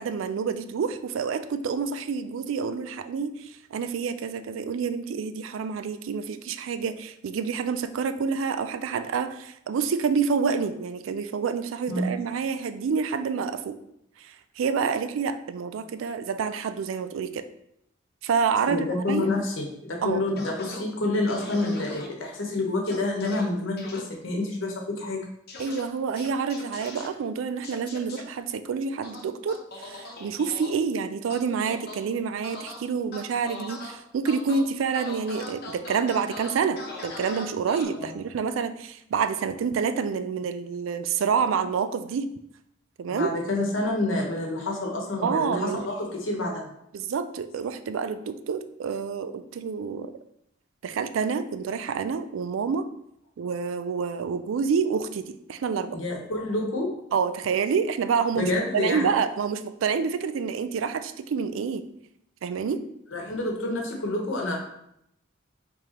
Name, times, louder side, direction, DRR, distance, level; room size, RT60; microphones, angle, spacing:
voice 1, 0.0-13.8 14.2-17.5 18.2-19.3 20.0-20.3 25.6-42.3 43.0-43.3 45.2-45.9 46.9-50.1 50.8-52.9 53.4-56.0 57.1-61.9 62.4-62.8, right 6 dB, 80° right, 11 dB, 0.3 m, -28 dB
voice 2, 18.7-25.3 37.9-38.1 43.1-46.7 55.9-56.9 58.3-59.2 63.1-64.6, left 2 dB, 75° left, 1 dB, 1.0 m, -28 dB
sound 1, 20.4-20.8 21.3-22.1 22.9-23.4 23.8-24.0 25.5-25.8 26.2-27.1 27.6-28.2 29.0-30.7 31.3-32.0 32.4-32.8 33.1-33.9 34.2-34.6 34.9-37.8, left 2 dB, 55° left, 0.8 m, -40 dB
4.8 x 3.6 x 2.9 m, 0.77 s
head